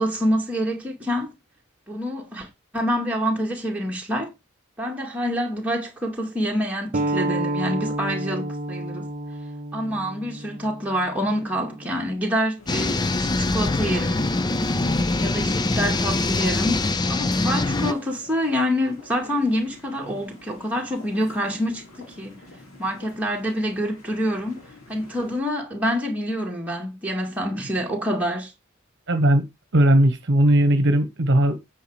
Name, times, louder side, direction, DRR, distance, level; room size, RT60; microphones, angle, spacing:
voice 1, 0.0-1.3 1.9-2.5 2.7-4.3 4.8-9.1 9.7-14.3 15.1-22.3 22.8-24.6 24.9-28.5, equal, 5° right, 2.1 m, -26 dB
sound 1, 6.9-12.1, right 1 dB, 35° right, 0.6 m, -30 dB
sound 2, 12.6-25.4, left 2 dB, 65° left, 2.8 m, -48 dB
sound 3, 12.7-17.9, left 2 dB, 20° left, 0.5 m, -23 dB
voice 2, 29.1-29.4 29.7-31.6, right 1 dB, 55° right, 1.1 m, -18 dB
8.9 x 4.9 x 4.9 m
head